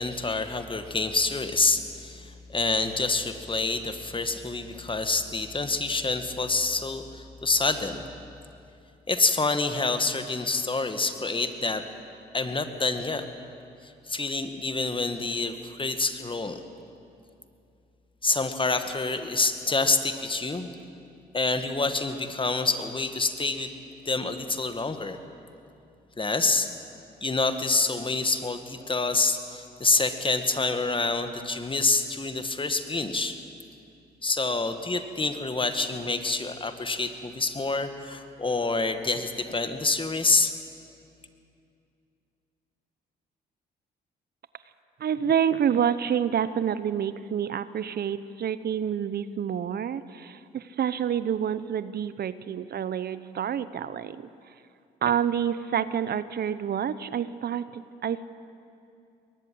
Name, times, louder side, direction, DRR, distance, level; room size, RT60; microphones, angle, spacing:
voice 1, 0.0-8.1 9.1-11.8 12.3-13.2 14.1-16.6 18.2-20.7 21.3-23.7 24.1-25.2 26.2-26.7 27.2-33.4 34.2-40.5, left 3 dB, 25° left, 8 dB, 1.9 m, -27 dB
voice 2, 45.0-54.5 55.0-58.3, right 8 dB, 55° right, 15 dB, 0.8 m, -28 dB
22.0 x 19.0 x 7.8 m, 2.6 s
supercardioid pair, 60°, 20 cm